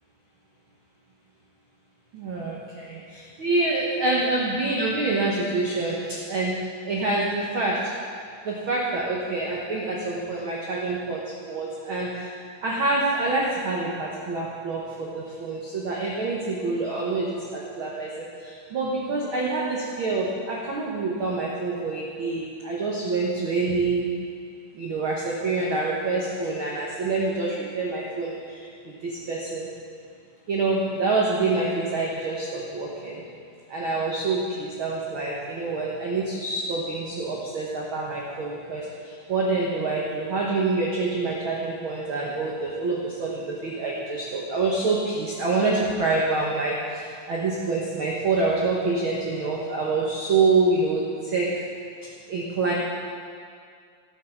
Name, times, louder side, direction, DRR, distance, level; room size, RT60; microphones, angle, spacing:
voice 1, 2.1-2.8 3.4-6.0 6.3-6.5 6.9-7.8 8.5-11.2 11.5-12.3 12.6-14.8 15.1-17.4 17.8-18.1 18.7-24.1 24.8-28.3 29.0-29.7 30.5-33.2 33.7-38.8 39.3-46.7 47.3-51.0 51.3-51.5 52.3-52.7, right 3 dB, 70° right, -4 dB, 1.2 m, -26 dB
16.0 x 8.2 x 4.6 m, 2.2 s
omnidirectional pair, 4.0 m